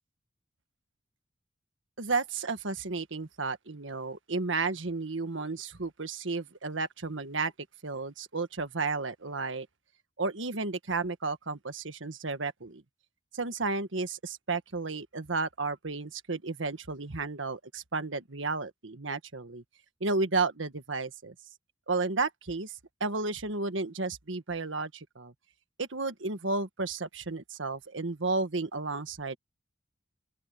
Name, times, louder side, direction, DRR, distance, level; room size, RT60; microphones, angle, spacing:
voice 1, 2.0-7.5 7.8-9.7 10.2-12.8 13.3-19.6 20.0-21.3 21.9-25.3 25.8-29.4, right 3 dB, 80° right, 1.6 m, -32 dB
open air
head